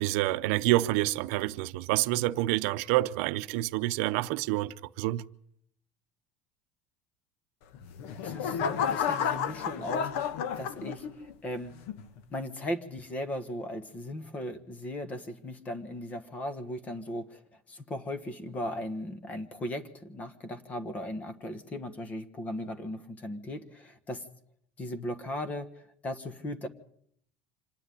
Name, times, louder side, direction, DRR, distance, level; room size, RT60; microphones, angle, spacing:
voice 1, 0.0-5.3, right 17 dB, 75° right, 0.7 m, -28 dB
sound 1, 7.7-11.3 11.9-12.2, left 8 dB, 85° left, 1.4 m, -31 dB
voice 2, 8.2-10.2 10.6-11.0 11.4-11.7 12.3-17.4 17.7-24.2 24.8-25.7 26.0-26.7, left 1 dB, 20° left, 1.4 m, -37 dB
26.0 x 10.0 x 9.9 m
cardioid pair, 175°, 7 cm